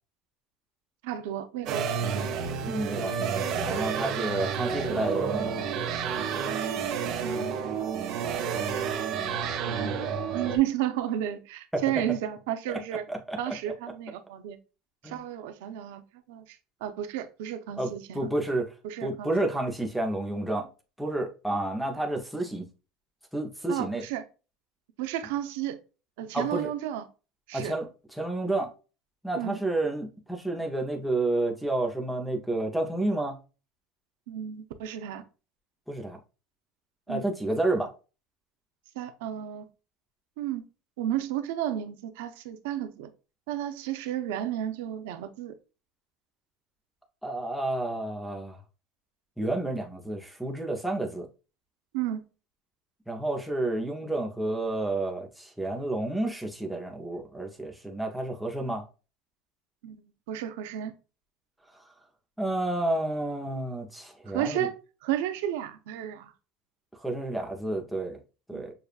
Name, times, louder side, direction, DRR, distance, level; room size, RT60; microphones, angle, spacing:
voice 1, 1.0-2.3 7.2-7.7 9.7-13.1 13.4-14.6 15.0-18.3 18.8-19.5 23.7-24.2 25.0-25.8 26.2-27.0 27.5-27.8 29.3-29.6 34.3-35.2 37.1-37.2 38.9-39.7 40.4-40.6 41.0-43.1 43.5-45.5 51.9-52.3 59.8-60.9 64.3-64.7 65.0-66.3 68.5-68.6, right 11 dB, 90° right, 0.6 m, -32 dB
sound 1, 1.7-10.6, right 6 dB, 40° right, 0.7 m, -30 dB
voice 2, 2.7-5.7 11.7-11.8 12.7-12.8 13.1-13.5 15.0-15.2 17.8-18.7 19.0-20.7 21.0-22.6 23.3-24.0 26.3-26.7 27.5-27.9 28.2-28.7 29.2-33.4 35.9-36.2 37.1-37.9 47.2-48.6 49.4-51.3 53.1-58.8 62.4-64.7 67.0-68.2 68.5-68.7, right 2 dB, ahead, 0.7 m, -30 dB
6.7 x 2.3 x 2.4 m
cardioid pair, 175°, 0 cm